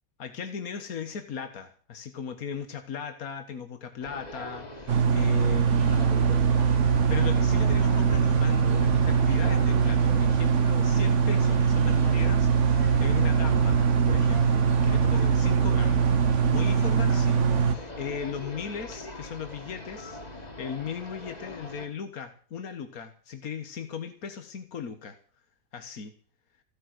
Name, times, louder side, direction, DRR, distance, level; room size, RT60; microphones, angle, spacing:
voice 1, 0.2-16.1 16.5-25.2 25.7-26.1, left 6 dB, 85° left, 8 dB, 1.8 m, -38 dB
sound 1, 4.0-21.9, left 2 dB, 30° left, 2.5 m, -41 dB
sound 2, 4.9-17.7, right 6 dB, 60° right, 1.3 m, -22 dB
15.5 x 10.5 x 7.8 m, 0.43 s
omnidirectional pair, 1.5 m